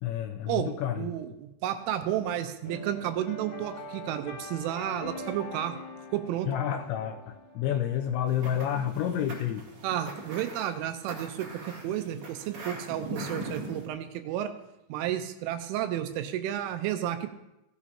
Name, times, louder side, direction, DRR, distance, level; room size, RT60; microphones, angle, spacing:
voice 1, 0.0-1.1 6.5-9.7, left 10 dB, 80° left, 3 dB, 2.7 m, -30 dB
voice 2, 1.0-5.8 6.1-6.5 9.8-14.5 14.9-17.3, right 11 dB, 85° right, 7 dB, 3.2 m, -32 dB
sound 1, 2.6-9.0, left 2 dB, 60° left, 3.4 m, -43 dB
sound 2, 8.2-13.9, right 2 dB, 55° right, 1.4 m, -40 dB
16.5 x 11.0 x 2.8 m, 0.88 s
omnidirectional pair, 5.7 m